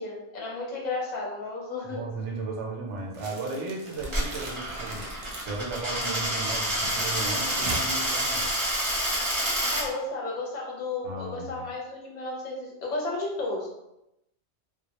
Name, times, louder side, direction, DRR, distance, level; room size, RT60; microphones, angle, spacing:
voice 1, 0.0-2.0 9.7-13.7, left 2 dB, 45° left, -2 dB, 0.6 m, -33 dB
voice 2, 1.9-5.1 5.4-8.5 11.0-11.7, right 3 dB, 90° right, 0 dB, 0.9 m, -35 dB
sound 1, 3.1-9.2, right 2 dB, 55° right, 0.3 m, -40 dB
Coin (dropping), 4.0-9.8, equal, 30° right, 0.7 m, -28 dB
2.2 x 2.0 x 2.8 m, 0.86 s
omnidirectional pair, 1.2 m